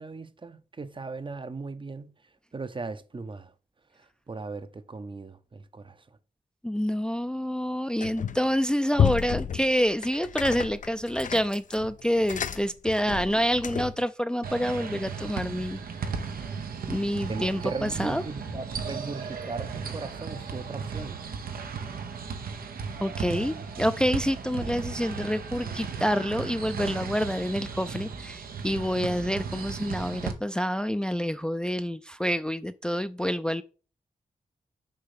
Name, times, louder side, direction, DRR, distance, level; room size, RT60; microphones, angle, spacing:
voice 1, 0.0-2.1 2.5-3.5 4.3-6.0 17.3-21.2, right 3 dB, 35° right, 0.7 m, -38 dB
voice 2, 6.6-15.8 16.4-16.5 16.9-18.2 23.0-33.6, equal, 5° left, 0.4 m, -27 dB
sound 1, 8.0-8.5 8.9-14.1, left 8 dB, 60° left, 0.5 m, -31 dB
sound 2, 14.4-30.3, right 5 dB, 90° right, 0.9 m, -36 dB
6.7 x 3.0 x 5.7 m
cardioid pair, 55°, 15 cm